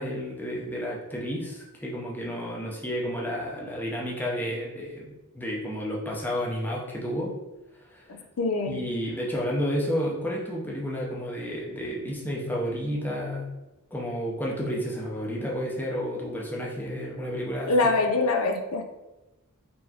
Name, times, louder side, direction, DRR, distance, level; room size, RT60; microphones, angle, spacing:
voice 1, 0.0-7.3 7.7-8.2 8.7-13.5 13.9-18.0, equal, 10° left, -3 dB, 0.6 m, -31 dB
voice 2, 8.1-8.8 17.7-18.8, left 3 dB, 75° left, 4 dB, 0.5 m, -24 dB
4.4 x 3.1 x 2.8 m, 1.0 s
head